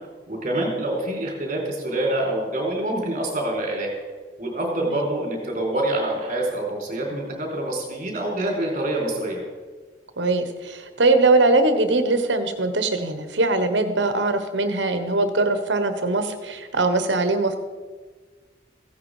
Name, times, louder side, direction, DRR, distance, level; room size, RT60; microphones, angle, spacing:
voice 1, 0.3-3.9 4.4-9.4, right 1 dB, 40° right, 0 dB, 3.9 m, -26 dB
voice 2, 10.2-17.6, right 2 dB, 80° right, 9 dB, 1.3 m, -21 dB
15.5 x 9.7 x 4.9 m, 1.4 s
head